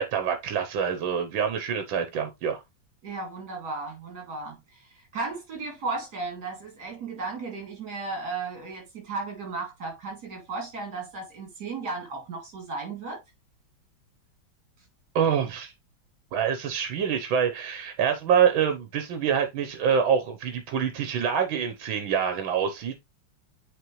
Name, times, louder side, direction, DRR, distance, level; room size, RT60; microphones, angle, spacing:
voice 1, 0.0-2.6 15.2-15.7 16.3-23.0, right 7 dB, 90° right, 1.7 m, -26 dB
voice 2, 3.0-13.2, right 3 dB, 55° right, 3.2 m, -35 dB
8.3 x 4.2 x 3.1 m
omnidirectional pair, 2.1 m